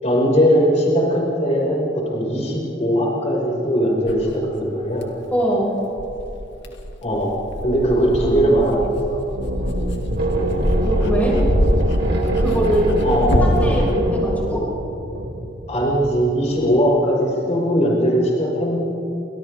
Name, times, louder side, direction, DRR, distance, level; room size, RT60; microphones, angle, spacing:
voice 1, 0.0-5.1 7.0-7.3 7.6-9.2 13.0-13.7 15.7-18.8, equal, 40° left, -4 dB, 5.9 m, -19 dB
Dog, 4.1-4.2 5.0-5.1 6.0-13.9, equal, 65° left, 2.4 m, -23 dB
voice 2, 5.3-5.8 10.8-11.4 12.4-13.0 13.4-14.7, right 1 dB, 10° left, -5 dB, 6.4 m, -23 dB
sound 1, 9.1-16.5, right 1 dB, 60° right, 2.9 m, -25 dB
30.0 x 27.5 x 3.7 m, 3.0 s
head